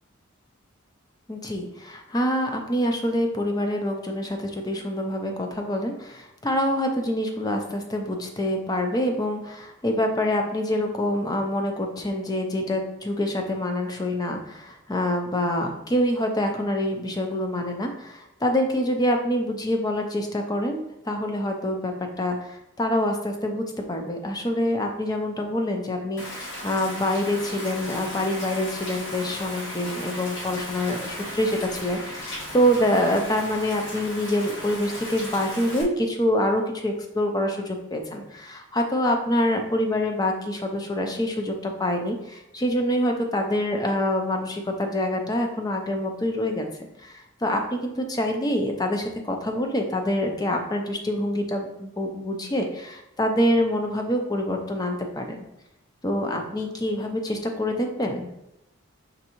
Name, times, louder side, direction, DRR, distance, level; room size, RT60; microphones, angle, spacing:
voice 1, 1.3-46.6 47.0-55.4 56.0-58.3, left 1 dB, 20° left, 4 dB, 0.5 m, -26 dB
Rain, 26.2-35.8, left 1 dB, 60° left, 1.1 m, -36 dB
5.2 x 3.5 x 2.9 m, 0.88 s
head